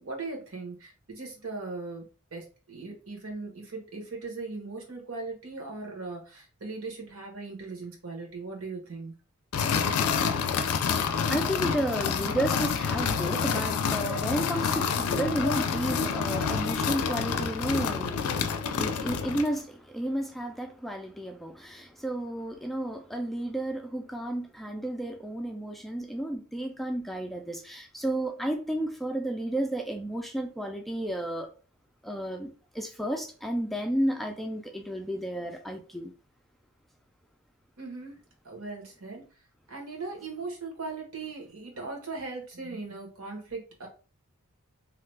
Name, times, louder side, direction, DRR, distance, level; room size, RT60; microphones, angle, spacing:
voice 1, 0.0-2.0 2.3-9.1 37.8-38.2 38.4-39.2 39.7-43.9, right 3 dB, 75° right, 1.2 m, -39 dB
sound 1, 9.5-19.6, left 6 dB, 90° left, 0.4 m, -28 dB
voice 2, 10.7-31.5 32.0-36.1, right 1 dB, ahead, 0.3 m, -32 dB
2.8 x 2.3 x 3.3 m
head